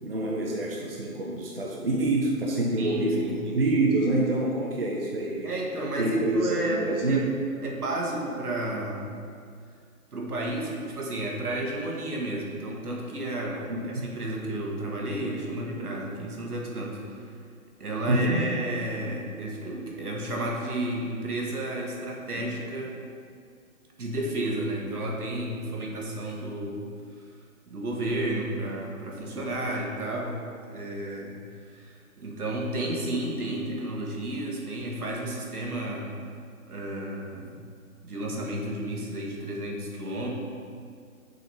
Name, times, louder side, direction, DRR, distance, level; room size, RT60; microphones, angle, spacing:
voice 1, 0.0-3.2 3.5-5.5 6.0-7.3 13.7-14.0 18.1-18.4, right 2 dB, 40° right, -3 dB, 0.6 m, -26 dB
voice 2, 2.8-3.6 5.4-7.3 7.6-9.1 10.1-17.4 17.8-22.9 24.0-26.9 27.2-27.3 27.7-31.4 31.7-36.2 36.7-37.6 38.0-40.3, right 1 dB, 85° right, -2 dB, 1.5 m, -32 dB
6.4 x 4.2 x 4.2 m, 2.2 s
hypercardioid pair, 180°, 44 cm